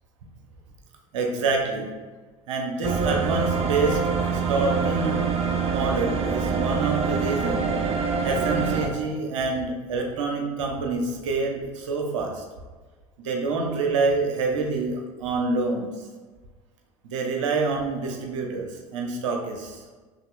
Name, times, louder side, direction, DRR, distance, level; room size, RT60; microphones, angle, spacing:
voice 1, 1.1-1.9 2.5-4.0 4.3-5.2 5.7-7.7 8.2-12.4 13.2-15.9 17.0-19.8, right 3 dB, 65° right, 2 dB, 0.8 m, -27 dB
sound 1, 2.8-8.9, right 5 dB, 40° right, 0.6 m, -25 dB
5.6 x 3.2 x 2.3 m, 1.3 s
figure-of-eight pair, 75°, 17 cm